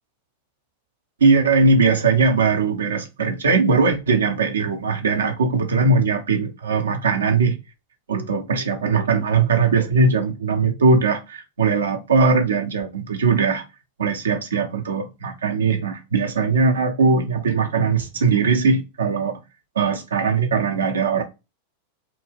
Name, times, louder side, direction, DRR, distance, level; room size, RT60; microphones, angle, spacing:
voice 1, 1.2-7.6 8.1-13.6 14.0-19.4 19.8-21.2, right 4 dB, 70° right, 0.5 m, -20 dB
2.3 x 2.1 x 3.3 m
figure-of-eight pair, 90°, 0 cm